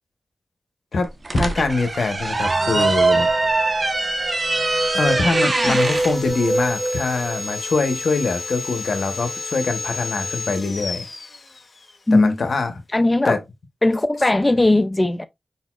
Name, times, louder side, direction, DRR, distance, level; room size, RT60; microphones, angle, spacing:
voice 1, 0.9-3.3 4.9-11.0 12.1-12.8 13.2-13.4, left 3 dB, 70° left, 0.9 m, -23 dB
sound 1, 1.0-6.2, right 2 dB, 45° right, 1.0 m, -24 dB
sound 2, 2.3-7.7 8.2-8.3 8.5-8.6 9.3-9.4 9.8-10.1, right 2 dB, 65° right, 1.4 m, -24 dB
Sawing, 5.5-11.9, left 3 dB, 55° left, 1.1 m, -32 dB
voice 2, 12.1-12.4 12.9-13.4 13.8-15.3, left 2 dB, 25° left, 0.4 m, -18 dB
4.5 x 4.1 x 2.4 m
cardioid pair, 45°, 0 cm